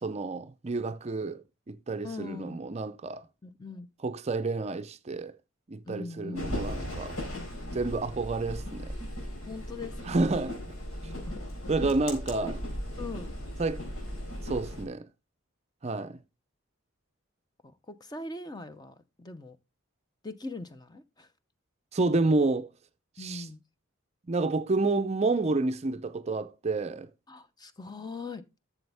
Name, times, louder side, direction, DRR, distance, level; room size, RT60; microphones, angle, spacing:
voice 1, 0.0-3.3 4.0-5.3 5.7-7.2 7.7-8.9 10.1-10.6 11.7-12.6 13.6-13.9 14.4-15.1 15.8-16.2 21.9-22.7 23.2-23.4 24.3-27.1, right 3 dB, 30° right, 0.5 m, -29 dB
voice 2, 2.0-2.6 3.4-3.9 5.9-6.6 7.3-7.8 9.5-10.2 11.0-11.5 12.4-12.5 13.0-13.3 17.6-19.6 20.2-21.3 23.2-23.6 27.3-28.4, left 3 dB, 20° left, 0.6 m, -41 dB
sound 1, 6.3-14.8, equal, 85° left, 4.1 m, -37 dB
12.0 x 7.0 x 3.4 m
head